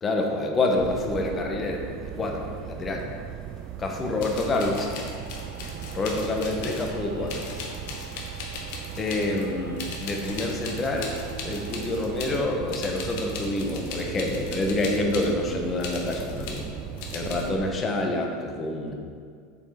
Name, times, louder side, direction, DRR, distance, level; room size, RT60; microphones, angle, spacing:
voice 1, 0.0-3.1 3.8-5.0 5.9-7.5 8.0-8.5 9.0-11.2 11.4-16.7 17.1-18.9, left 2 dB, 25° left, 1 dB, 1.1 m, -27 dB
sound 1, 0.8-17.8, right 10 dB, 45° right, 0.3 m, -38 dB
sound 2, 3.4-3.5 4.2-7.0 7.3-9.5 9.8-12.4 12.7-15.3 15.8-16.7 17.0-17.5, left 4 dB, 65° left, 1.3 m, -38 dB
sound 3, 4.5-12.2, right 3 dB, 85° right, 1.7 m, -46 dB
7.3 x 4.4 x 5.0 m, 2.1 s
supercardioid pair, 120°, 0 cm